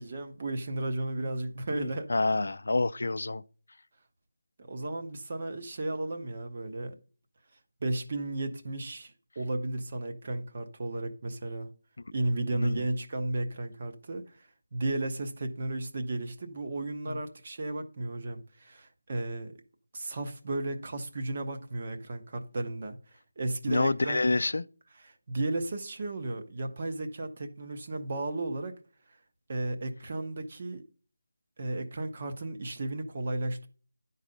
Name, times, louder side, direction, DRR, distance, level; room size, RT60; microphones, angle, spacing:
voice 1, 0.0-2.1 4.7-6.9 7.8-11.7 12.1-14.2 14.7-19.5 19.9-23.0 23.4-24.2 25.1-28.8 29.5-30.8 31.6-33.7, right 2 dB, 30° right, 0.7 m, -34 dB
voice 2, 1.7-3.4 12.5-12.8 17.1-17.2 23.7-24.6, left 2 dB, 65° left, 0.4 m, -28 dB
10.5 x 4.0 x 5.1 m
figure-of-eight pair, 180°, 0 cm